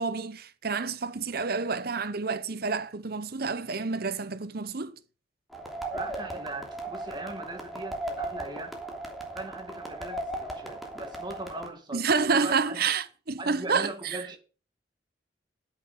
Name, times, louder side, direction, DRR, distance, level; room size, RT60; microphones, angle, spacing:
voice 1, 0.0-4.9 11.9-14.2, right 4 dB, 55° right, 0.9 m, -29 dB
sound 1, 5.5-11.7, right 1 dB, ahead, 3.0 m, -37 dB
voice 2, 5.9-8.8 9.3-12.1 12.3-12.9 13.4-14.4, right 2 dB, 25° right, 2.1 m, -39 dB
10.5 x 9.8 x 5.0 m
head